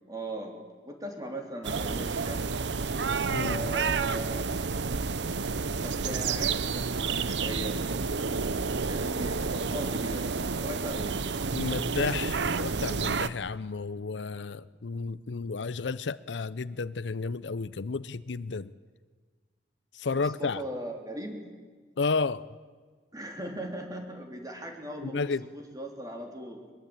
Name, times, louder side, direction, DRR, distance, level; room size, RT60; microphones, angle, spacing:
voice 1, 0.1-0.6 0.8-2.5 3.4-4.4 5.7-7.8 8.8-11.2 20.1-21.5 23.1-26.7, right 1 dB, 20° right, 3.5 m, -39 dB
sound 1, 1.6-13.3, right 4 dB, 80° right, 0.8 m, -30 dB
voice 2, 3.3-3.7 11.5-18.7 19.9-20.6 22.0-22.5 25.0-25.4, left 4 dB, 85° left, 0.6 m, -32 dB
22.0 x 21.5 x 8.9 m
head